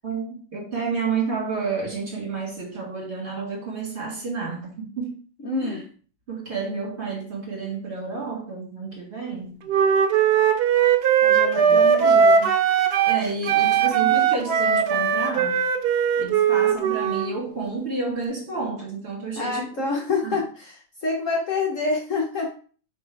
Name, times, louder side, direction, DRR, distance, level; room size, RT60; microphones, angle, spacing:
voice 1, 0.0-5.2 5.6-5.8 6.3-9.6 11.6-12.3 13.1-15.6 16.2-19.7 20.2-20.4, right 4 dB, 35° right, 2.2 m, -30 dB
voice 2, 5.4-5.8 11.2-12.5 19.4-20.7 21.0-22.5, left 3 dB, 50° left, 1.3 m, -27 dB
Wind instrument woodwind instrument, 9.7-13.2 13.5-17.3, right 7 dB, 70° right, 1.2 m, -19 dB
6.1 x 3.4 x 4.7 m
omnidirectional pair, 2.0 m